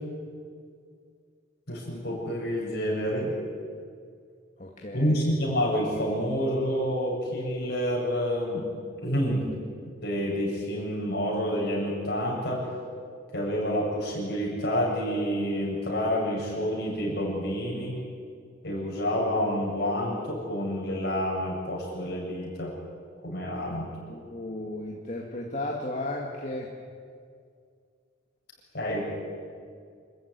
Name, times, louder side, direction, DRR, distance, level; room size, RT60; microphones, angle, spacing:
voice 1, 1.7-3.3 4.9-8.7 9.0-9.4 10.0-12.6 13.3-18.0 18.6-22.7 23.2-23.9 28.7-29.0, equal, 55° left, -3 dB, 7.7 m, -28 dB
voice 2, 4.6-5.3 24.1-26.7, left 1 dB, 40° left, 0 dB, 2.1 m, -34 dB
26.5 x 14.5 x 9.6 m, 2.2 s
head